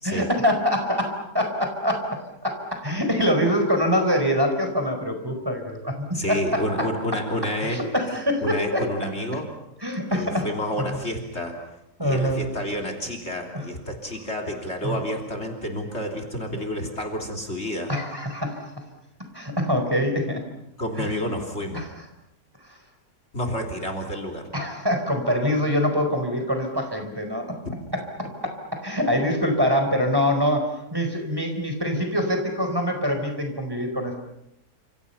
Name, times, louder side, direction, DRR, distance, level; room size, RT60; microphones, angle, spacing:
voice 1, 0.0-6.6 7.6-8.8 9.8-10.5 10.8-11.0 12.0-12.5 13.5-13.7 14.8-15.0 17.9-18.7 19.3-20.4 21.0-21.1 21.7-21.9 22.6-22.8 24.5-27.5 27.9-28.0 28.4-34.2, equal, 15° right, 4 dB, 4.6 m, -24 dB
voice 2, 6.1-7.8 8.4-9.5 10.1-11.6 12.0-17.9 20.8-21.8 23.3-24.5 27.6-27.7, left 1 dB, 40° left, 5 dB, 3.6 m, -29 dB
29.5 x 27.5 x 5.7 m, 0.83 s
omnidirectional pair, 1.7 m